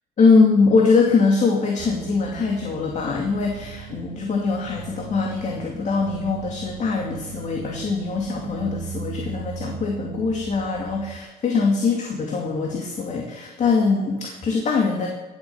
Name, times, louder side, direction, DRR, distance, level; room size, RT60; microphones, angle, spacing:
voice 1, 0.2-15.1, left 4 dB, 45° left, 0 dB, 2.4 m, -22 dB
sound 1, 1.8-11.2, right 7 dB, 80° right, 1.5 m, -37 dB
18.0 x 8.0 x 7.0 m, 1.2 s
cardioid pair, 110°, 17 cm